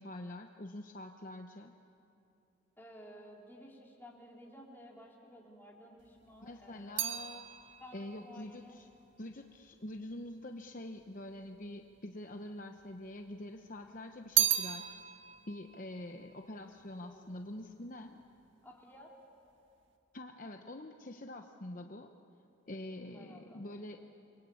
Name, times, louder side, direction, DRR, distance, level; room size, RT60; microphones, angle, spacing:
voice 1, 0.0-1.7 6.4-7.4 7.9-8.9 9.2-14.9 15.5-18.2 20.1-22.1 22.7-24.0, left 1 dB, 40° left, 4 dB, 0.9 m, -45 dB
voice 2, 2.8-7.2 7.8-8.8 17.0-17.3 18.6-19.1 23.1-23.6, equal, 10° left, -2 dB, 3.5 m, -54 dB
sound 1, 6.0-10.4 11.2-12.0 12.3-13.4 13.8-17.3 17.6-18.1, right 11 dB, 65° right, 1.6 m, -36 dB
29.5 x 23.5 x 8.6 m, 2.8 s
head